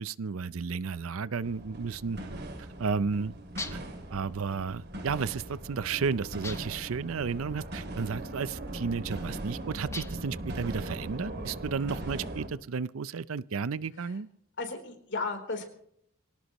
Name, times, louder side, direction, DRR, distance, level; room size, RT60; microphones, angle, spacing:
voice 1, 0.0-2.2 2.8-3.3 3.7-3.8 4.1-14.3, right 5 dB, 75° right, 18 dB, 0.5 m, -33 dB
sound 1, 1.4-12.5, right 1 dB, 50° right, 2.5 m, -40 dB
sound 2, 3.6-4.0 6.4-6.9 9.9-10.4, left 3 dB, 15° left, 1.0 m, -40 dB
voice 2, 14.6-15.6, left 3 dB, 60° left, 3 dB, 3.7 m, -34 dB
24.0 x 17.5 x 3.0 m, 0.70 s
head